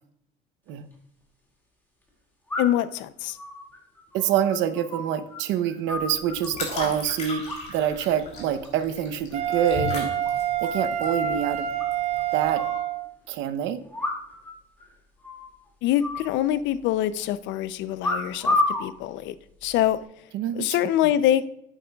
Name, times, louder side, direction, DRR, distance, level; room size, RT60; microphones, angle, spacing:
sound 1, 0.7-0.8 2.5-2.9 3.4-5.4 5.6-6.7 7.5-8.0 8.3-8.7 9.1-9.6 9.9-10.0 10.2-10.3 10.6-10.7 11.0-11.1 11.8-12.8 13.9-14.5 14.8-14.9 15.2-15.5 16.0-16.9 18.0-18.9 19.6-20.0, left 2 dB, 10° left, 2.2 m, -30 dB
voice 1, 2.6-3.4 15.8-19.3 19.6-20.0 20.6-21.5, left 12 dB, 80° left, 15 dB, 0.5 m, -24 dB
voice 2, 4.1-7.4 7.7-10.1 10.6-11.7 12.3-12.6 13.3-13.8 20.3-20.8, right 9 dB, 90° right, 11 dB, 0.8 m, -26 dB
sound 2, 5.9-12.7, left 3 dB, 40° left, 3.3 m, -37 dB
Wind instrument woodwind instrument, 9.3-13.1, right 9 dB, 35° right, 0.7 m, -27 dB
11.0 x 8.9 x 2.3 m, 0.78 s
cardioid pair, 150°, 19 cm